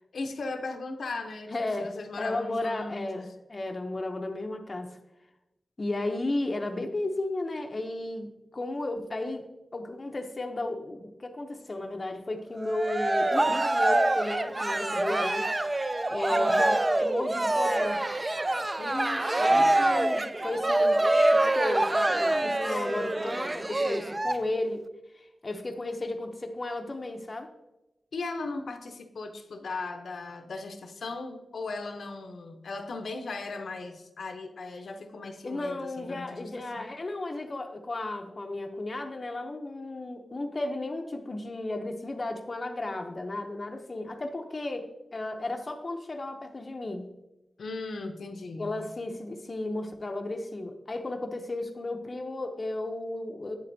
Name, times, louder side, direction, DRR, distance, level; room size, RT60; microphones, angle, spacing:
voice 1, 0.1-3.3 16.3-16.6 18.8-19.8 22.6-23.3 28.1-36.5 36.8-36.9 47.6-48.8, left 3 dB, 75° left, 6 dB, 0.6 m, -38 dB
voice 2, 1.5-5.0 5.8-9.5 9.7-18.0 19.4-21.0 21.3-24.8 25.2-27.5 35.4-47.1 48.6-53.6, left 2 dB, 35° left, 4 dB, 0.5 m, -34 dB
Cheering, 12.6-24.3, right 2 dB, 25° right, 0.3 m, -25 dB
8.1 x 7.5 x 2.6 m, 0.95 s
wide cardioid pair, 120°, 0 cm